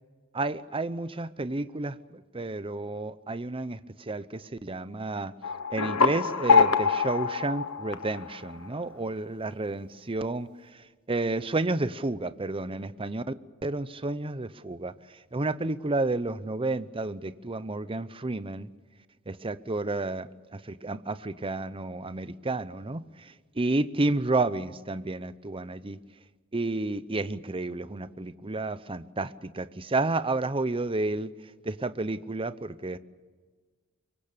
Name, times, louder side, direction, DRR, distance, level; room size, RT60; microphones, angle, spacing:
voice 1, 0.3-5.3 5.7-13.2 13.6-14.9 15.3-18.7 19.3-26.0 26.5-31.3 31.6-33.0, right 2 dB, 25° right, 14 dB, 0.8 m, -31 dB
sound 1, 5.4-8.7, left 5 dB, 90° left, 1.2 m, -25 dB
24.0 x 23.5 x 6.8 m, 1.5 s
head